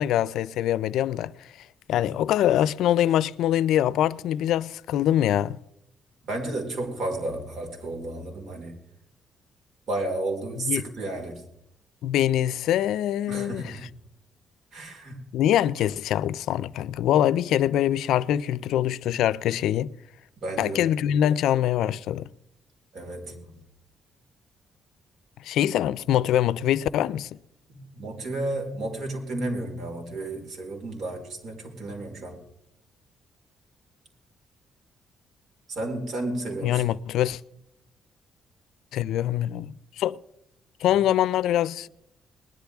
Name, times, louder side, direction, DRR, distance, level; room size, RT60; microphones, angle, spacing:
voice 1, 0.0-1.3 1.9-5.6 10.6-10.8 12.0-13.7 15.3-19.9 20.6-22.3 25.4-27.3 36.6-37.4 38.9-40.2 40.8-41.9, left 11 dB, 85° left, 0.4 m, -24 dB
voice 2, 6.2-8.7 9.9-11.4 13.3-13.8 14.7-15.3 20.4-21.0 22.9-23.5 27.7-32.4 35.7-36.8, right 2 dB, 60° right, 4.4 m, -32 dB
20.5 x 11.5 x 3.5 m
cardioid pair, 90°, 0 cm